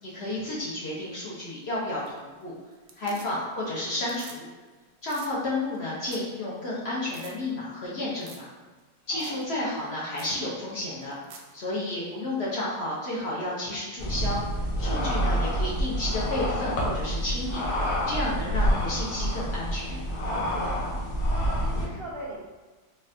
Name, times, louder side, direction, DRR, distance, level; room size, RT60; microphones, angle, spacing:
voice 1, 0.0-2.5 3.0-4.5 5.0-8.4 9.1-11.1 11.5-14.4 14.8-17.7 18.1-20.0, left 1 dB, 55° left, -6 dB, 0.8 m, -31 dB
sound 1, 1.9-2.4 2.7-3.6 3.9-4.4 4.7-4.8 5.0-5.3 5.7-5.8 6.0-6.3 6.6-6.7 7.1-7.3 8.2-8.5 8.8-8.9 9.2-9.4 9.8-9.9 10.1-10.4 11.0-11.5 13.7-13.8, right 5 dB, 70° right, 0.9 m, -48 dB
sound 2, 14.0-21.9, equal, 85° left, 1.4 m, -28 dB
voice 2, 20.2-20.8 21.2-22.4, right 1 dB, 90° right, -5 dB, 0.5 m, -39 dB
4.1 x 2.4 x 2.6 m, 1.3 s
omnidirectional pair, 1.8 m